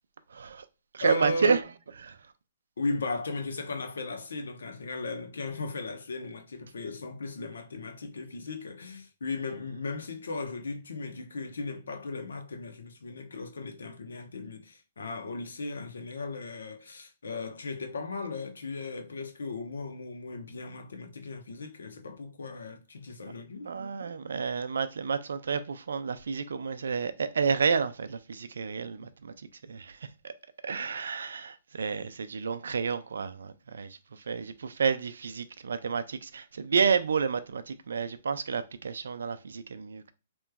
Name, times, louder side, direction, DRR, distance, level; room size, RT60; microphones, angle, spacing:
voice 1, 0.3-0.7 0.9-1.6 2.0-2.2 23.6-30.3 30.6-40.1, right 5 dB, 80° right, 0.4 m, -30 dB
voice 2, 1.0-1.5 2.8-23.7 29.0-29.1, left 3 dB, 85° left, 0.7 m, -36 dB
3.4 x 3.0 x 2.2 m
hypercardioid pair, 135°, 0 cm